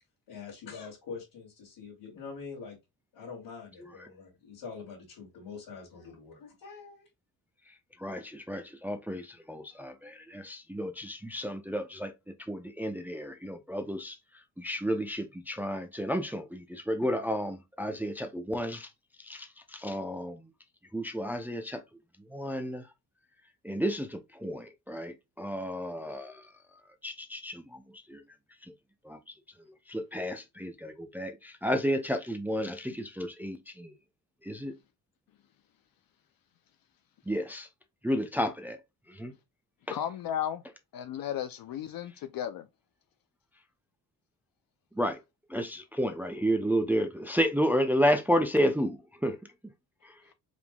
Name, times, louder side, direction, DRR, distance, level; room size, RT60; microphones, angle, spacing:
voice 1, 0.3-2.8 3.1-7.1, left 5 dB, 85° left, 2.5 m, -44 dB
voice 2, 8.0-12.1 12.5-14.2 14.6-18.9 19.2-20.5 20.9-21.8 22.3-22.8 23.6-26.4 27.0-27.8 28.1-28.2 29.1-29.2 29.9-33.9 34.4-34.7 37.3-37.7 38.0-38.8 39.1-39.3 39.9-40.0 45.0-45.2 45.5-49.4, equal, 5° right, 0.5 m, -31 dB
voice 3, 39.9-40.6 40.9-42.7, left 10 dB, 55° left, 0.5 m, -34 dB
4.9 x 3.5 x 2.2 m
cardioid pair, 95°, 42 cm